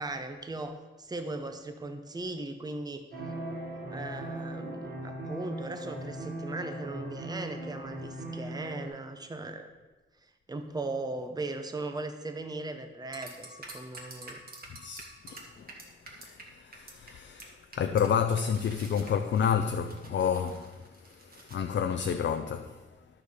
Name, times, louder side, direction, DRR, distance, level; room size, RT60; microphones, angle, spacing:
voice 1, 0.0-3.0 3.9-9.7 10.5-14.4, right 2 dB, 20° right, 0.8 m, -38 dB
sound 1, 3.1-8.9, right 1 dB, 65° right, 2.6 m, -39 dB
sound 2, 13.1-16.4 16.7-17.1 17.4-17.5 17.7-21.7, right 2 dB, 50° right, 1.7 m, -47 dB
voice 2, 14.7-15.7 16.1-22.8, left 7 dB, 65° left, 0.5 m, -30 dB
12.0 x 6.7 x 4.9 m
wide cardioid pair, 160°, 20 cm